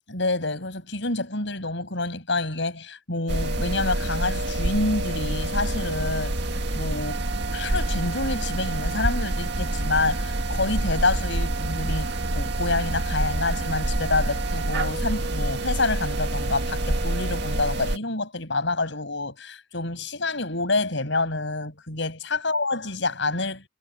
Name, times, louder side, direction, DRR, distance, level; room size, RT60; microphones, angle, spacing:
voice 1, 0.1-6.3 6.7-7.2 7.5-23.6, left 3 dB, 65° left, 6.4 m, -27 dB
sound 1, 3.3-18.0, right 1 dB, 55° right, 2.0 m, -27 dB
head